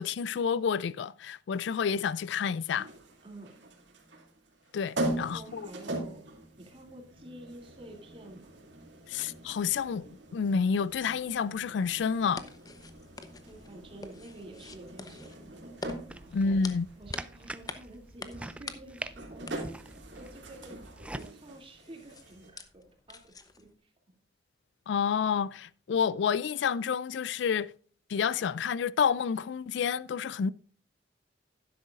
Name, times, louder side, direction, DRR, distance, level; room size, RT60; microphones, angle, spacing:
voice 1, 0.0-2.9 4.7-5.7 9.1-12.4 16.3-16.9 24.9-27.7 28.1-30.5, left 6 dB, 70° left, 0.4 m, -29 dB
sound 1, 2.8-22.5, right 1 dB, 75° right, 2.6 m, -42 dB
voice 2, 3.2-3.6 5.0-6.2 6.6-8.5 13.4-15.7 16.1-16.6 16.9-24.1, right 1 dB, 30° right, 2.6 m, -50 dB
sound 2, 12.2-23.7, left 3 dB, 20° left, 0.8 m, -47 dB
sound 3, 16.1-21.3, right 1 dB, 5° right, 0.4 m, -44 dB
12.0 x 10.5 x 2.5 m
head